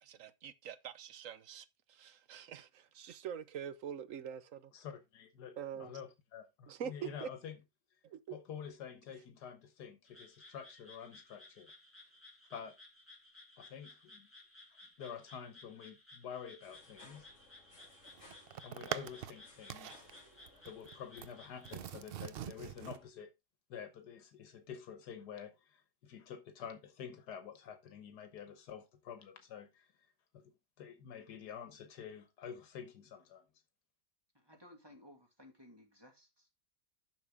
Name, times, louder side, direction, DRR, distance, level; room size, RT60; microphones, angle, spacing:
voice 1, 0.0-4.7 5.6-5.9 6.7-7.3 8.0-8.4, right 8 dB, 60° right, 1.1 m, -45 dB
voice 2, 4.7-7.6 8.3-11.7 12.5-12.7 13.6-14.3 15.0-17.3 18.6-20.2 20.6-23.3 23.7-29.9 30.3-33.4, left 8 dB, 80° left, 1.6 m, -48 dB
Frog, 10.0-21.8, left 2 dB, 5° left, 2.7 m, -58 dB
sound 1, 16.6-23.1, left 2 dB, 50° left, 3.0 m, -63 dB
sound 2, 17.8-19.4 19.7-20.1 20.5-21.3 21.6-23.0, right 10 dB, 80° right, 0.5 m, -43 dB
voice 3, 34.3-36.6, left 1 dB, 15° right, 2.3 m, -59 dB
10.5 x 6.5 x 3.5 m
omnidirectional pair, 1.7 m